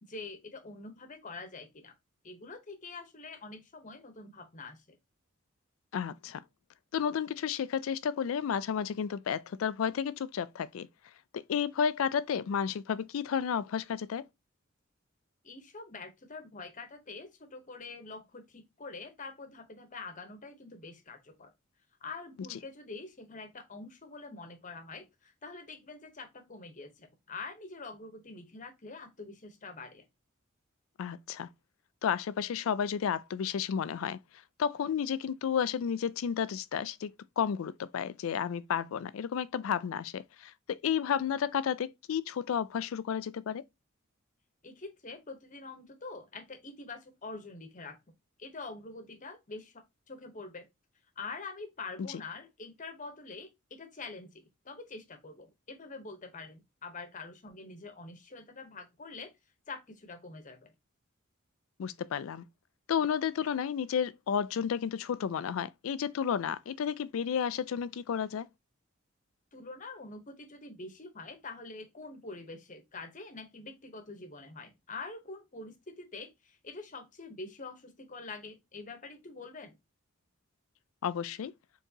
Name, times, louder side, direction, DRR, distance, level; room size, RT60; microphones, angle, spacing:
voice 1, 0.0-1.9 2.2-5.0 15.4-21.5 22.0-30.0 44.6-48.0 48.4-50.7 51.2-59.3 59.7-60.7 69.5-79.7, left 3 dB, 40° left, 1.0 m, -45 dB
voice 2, 5.9-6.4 6.9-10.9 11.3-14.2 22.5-22.6 31.0-31.5 32.0-34.2 34.6-43.6 61.8-62.4 62.9-68.5 81.0-81.5, left 7 dB, 75° left, 0.4 m, -32 dB
4.5 x 3.7 x 2.8 m
head